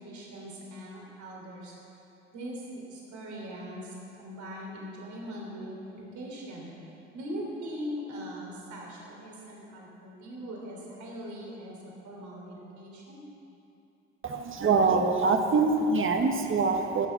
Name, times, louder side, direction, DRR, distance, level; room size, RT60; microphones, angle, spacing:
voice 1, 0.0-1.8 2.3-6.7 7.1-13.2, equal, 65° right, -2 dB, 3.5 m, -41 dB
voice 2, 14.2-17.1, right 4 dB, 40° right, 4 dB, 1.4 m, -24 dB
17.0 x 6.9 x 6.0 m, 2.8 s
hypercardioid pair, 55°, 31 cm